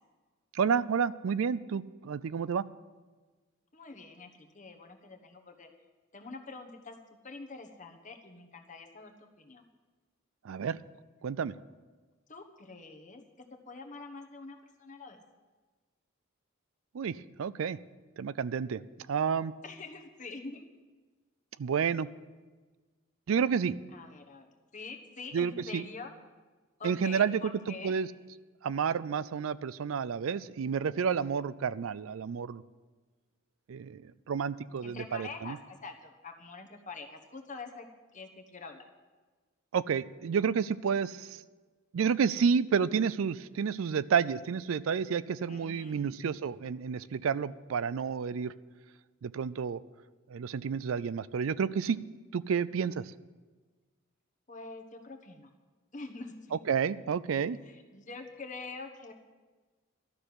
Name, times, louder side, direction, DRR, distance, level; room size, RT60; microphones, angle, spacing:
voice 1, 0.5-2.6 10.4-10.8 11.2-11.5 16.9-17.8 18.2-18.8 19.1-19.5 21.6-22.1 23.3-23.8 25.3-25.8 26.8-27.4 27.8-28.1 28.6-32.6 33.7-34.0 34.3-35.6 39.7-41.4 41.9-48.5 49.2-49.8 50.3-52.0 52.3-53.1 56.7-57.6, right 6 dB, 80° right, 17 dB, 0.4 m, -30 dB
voice 2, 3.7-5.7 6.1-7.0 7.2-9.6 12.3-15.2 19.6-20.7 23.9-26.2 26.8-28.0 34.8-37.9 38.1-38.8 45.5-46.1 54.5-55.5 55.9-56.6 57.6-59.1, left 3 dB, 35° left, 5 dB, 1.2 m, -45 dB
12.5 x 6.6 x 9.4 m, 1.3 s
head